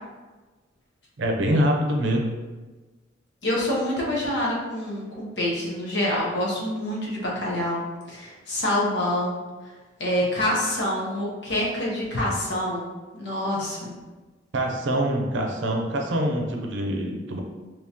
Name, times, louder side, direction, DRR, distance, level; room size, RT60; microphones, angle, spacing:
voice 1, 1.2-2.4 14.5-17.4, right 1 dB, 75° right, 1 dB, 0.6 m, -24 dB
voice 2, 3.4-9.4 10.0-12.9 13.1-13.9, left 1 dB, 60° left, -4 dB, 0.9 m, -26 dB
3.5 x 2.9 x 2.8 m, 1.2 s
head